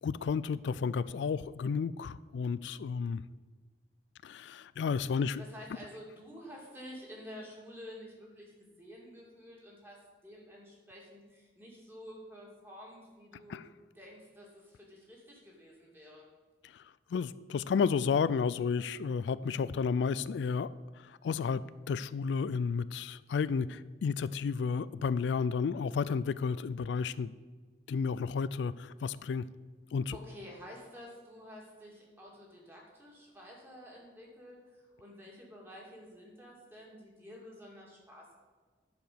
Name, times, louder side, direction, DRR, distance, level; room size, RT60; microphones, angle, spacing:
voice 1, 0.0-3.2 4.2-5.4 13.5-13.6 16.7-16.8 17.1-20.7 21.0-27.3 27.9-29.4 29.9-30.2, left 5 dB, 90° left, 16 dB, 0.3 m, -32 dB
voice 2, 5.2-13.7 13.9-16.2 30.1-38.3, equal, 15° right, -3 dB, 2.2 m, -50 dB
10.5 x 4.9 x 6.7 m, 1.4 s
head